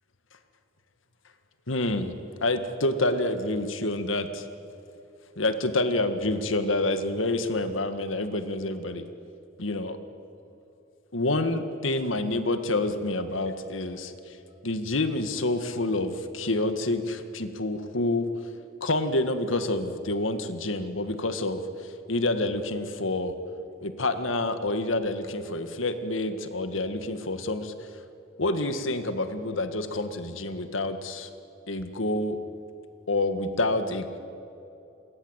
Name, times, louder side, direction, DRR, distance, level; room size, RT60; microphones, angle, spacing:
voice 1, 1.7-4.4 5.4-9.1 9.6-10.0 11.1-14.4 14.6-18.3 18.8-21.6 22.1-23.3 23.8-27.7 28.4-31.3 31.7-32.4 33.1-34.2, left 2 dB, 80° left, 9 dB, 1.9 m, -28 dB
28.0 x 22.0 x 8.2 m, 2.8 s
head